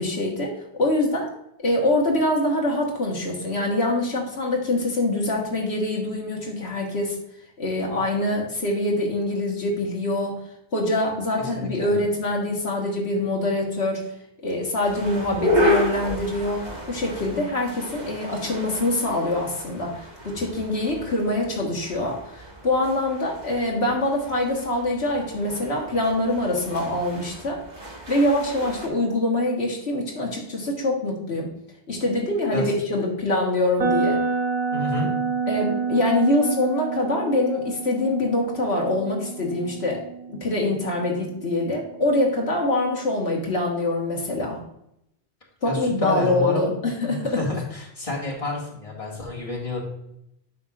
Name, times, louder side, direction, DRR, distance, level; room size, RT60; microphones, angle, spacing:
voice 1, 0.0-1.3 1.6-7.2 7.6-10.4 10.7-14.0 14.4-27.6 28.1-31.5 31.9-34.2 35.5-40.0 40.3-44.6 45.6-47.4, left 1 dB, 85° left, -2 dB, 1.8 m, -24 dB
voice 2, 11.4-11.9 32.5-32.7 34.7-35.1 45.6-46.7 47.0-49.8, left 2 dB, 30° left, -3 dB, 2.1 m, -29 dB
sound 1, 14.8-28.9, left 1 dB, 45° right, 1.7 m, -31 dB
sound 2, 33.8-41.7, right 4 dB, 75° right, 1.7 m, -28 dB
9.7 x 6.6 x 2.5 m, 0.79 s
omnidirectional pair, 1.1 m